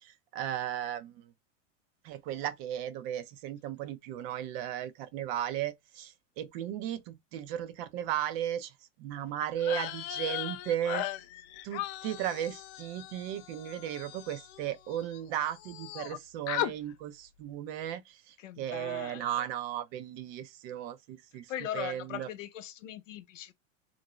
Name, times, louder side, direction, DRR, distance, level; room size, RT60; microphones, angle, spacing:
voice 1, 0.0-1.3 2.0-8.7 9.0-11.1 11.6-22.3, right 11 dB, 55° right, 0.6 m, -35 dB
sound 1, 9.6-15.2 15.4-16.2 16.5-16.7, left 14 dB, 40° left, 0.4 m, -38 dB
voice 2, 18.4-19.5 21.5-23.5, left 11 dB, 85° left, 0.8 m, -40 dB
2.5 x 2.2 x 3.0 m
hypercardioid pair, 120°, 37 cm